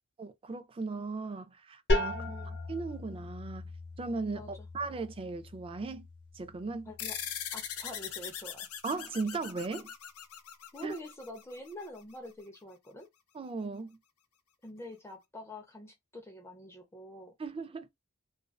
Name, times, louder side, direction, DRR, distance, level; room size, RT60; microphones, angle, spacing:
voice 1, 0.2-2.2 2.7-3.7 4.0-6.1 6.3-6.9 8.8-9.9 10.8-10.9 13.3-14.0 17.4-17.9, right 3 dB, 25° right, 0.3 m, -37 dB
sound 1, 1.9-7.4, left 2 dB, 50° left, 1.1 m, -36 dB
voice 2, 2.1-2.6 4.3-4.7 6.9-7.2 7.5-8.7 10.7-13.1 14.6-17.3, left 1 dB, 10° left, 0.7 m, -46 dB
sound 2, 7.0-11.9, left 9 dB, 70° left, 0.5 m, -41 dB
2.5 x 2.2 x 2.2 m
head